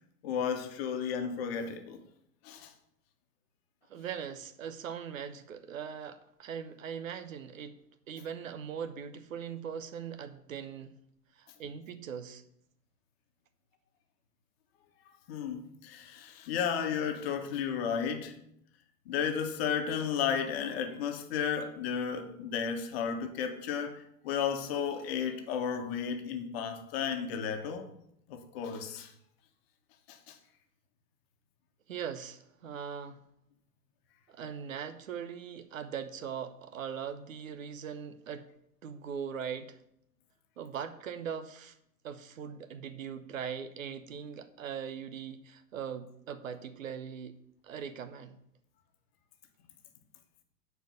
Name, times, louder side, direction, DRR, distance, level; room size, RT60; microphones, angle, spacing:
voice 1, 0.2-2.0 2.4-2.7 15.3-18.4 19.0-27.9 28.3-29.1 30.1-30.4, left 7 dB, 40° left, 1.5 m, -33 dB
voice 2, 3.9-7.8 8.1-10.9 11.4-12.4 31.9-33.2 34.3-38.5 38.8-39.8 40.6-41.8 42.0-47.4 47.6-48.4, right 7 dB, 55° right, 0.9 m, -40 dB
10.0 x 4.7 x 6.9 m
figure-of-eight pair, 110°, 48 cm